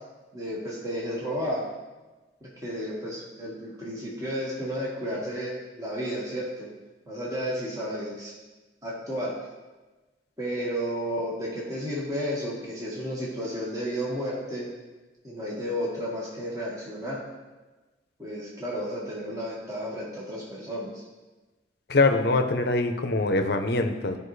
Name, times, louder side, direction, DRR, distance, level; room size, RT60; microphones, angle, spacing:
voice 1, 0.3-1.6 2.4-6.7 7.1-8.3 8.8-9.3 10.4-14.7 15.2-17.2 18.2-21.0, equal, 20° right, -6 dB, 1.7 m, -32 dB
voice 2, 21.9-24.2, left 3 dB, 60° left, 6 dB, 0.7 m, -23 dB
13.5 x 5.2 x 3.2 m, 1.2 s
head